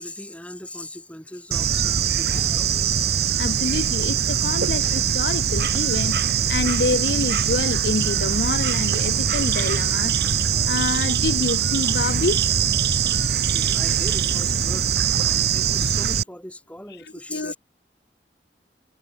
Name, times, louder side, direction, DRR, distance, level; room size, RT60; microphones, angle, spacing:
voice 1, 0.0-3.4 5.0-5.1 13.5-17.6, left 1 dB, 5° left, 7.9 m, -39 dB
Bird / Insect, 1.5-16.2, right 7 dB, 65° right, 1.7 m, -22 dB
voice 2, 3.4-10.2 10.7-12.4 15.3-15.4 17.0-17.5, left 3 dB, 65° left, 0.8 m, -27 dB
head